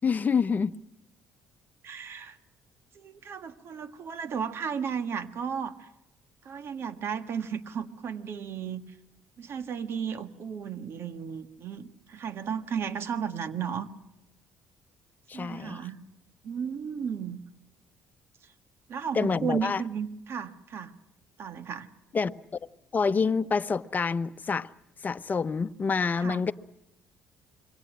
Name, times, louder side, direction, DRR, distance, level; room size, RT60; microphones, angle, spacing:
voice 1, 0.0-0.7 15.3-15.8 19.1-19.8 22.1-22.3 22.9-24.7 25.0-26.5, left 5 dB, 35° left, 0.9 m, -27 dB
voice 2, 1.8-2.4 2.9-5.9 6.4-8.8 9.4-13.9 15.3-16.0 16.4-17.4 18.9-20.9 21.4-21.9 26.2-26.4, right 7 dB, 55° right, 1.6 m, -34 dB
26.5 x 23.0 x 6.3 m
hypercardioid pair, 55°, 5 cm